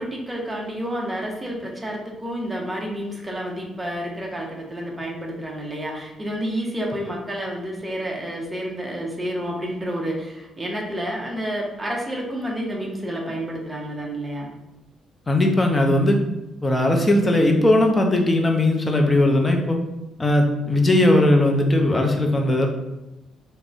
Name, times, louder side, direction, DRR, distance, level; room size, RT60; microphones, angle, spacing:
voice 1, 0.0-14.5, equal, 15° right, -2 dB, 0.6 m, -29 dB
voice 2, 15.3-16.2 16.6-19.8 20.2-22.7, left 1 dB, 20° left, 3 dB, 0.5 m, -18 dB
3.5 x 2.1 x 2.5 m, 0.95 s
cardioid pair, 90°, 0 cm